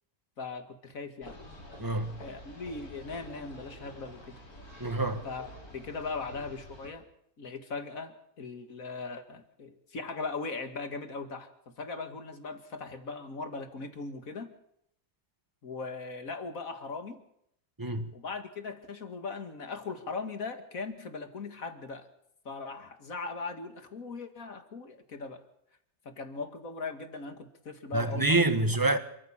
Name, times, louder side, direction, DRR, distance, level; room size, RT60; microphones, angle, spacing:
voice 1, 0.4-1.4 2.2-4.4 5.2-7.0 7.4-14.5 15.6-17.2 18.1-22.1 22.4-25.4 26.1-28.4, left 4 dB, 70° left, 2.5 m, -39 dB
sound 1, 1.2-6.9, left 1 dB, 90° left, 5.2 m, -48 dB
voice 2, 1.8-2.2 4.8-5.3 17.8-18.1 27.9-29.0, right 2 dB, 15° right, 1.6 m, -27 dB
28.0 x 14.5 x 7.3 m
omnidirectional pair, 1.5 m